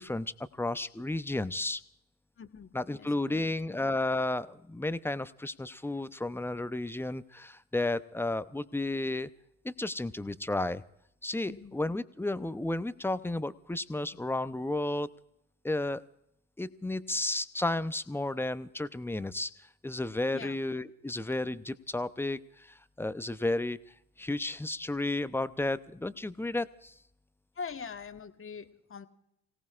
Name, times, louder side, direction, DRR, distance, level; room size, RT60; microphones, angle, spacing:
voice 1, 0.0-1.8 2.7-9.3 9.6-10.8 11.2-15.1 15.6-16.0 16.6-23.8 24.2-26.9, left 2 dB, 5° left, 14 dB, 0.7 m, -33 dB
voice 2, 2.4-2.7 3.0-3.8 11.5-11.7 20.3-20.6 27.6-29.1, left 5 dB, 30° left, 9 dB, 1.3 m, -43 dB
29.0 x 17.5 x 2.5 m, 0.77 s
hypercardioid pair, 55°, 42 cm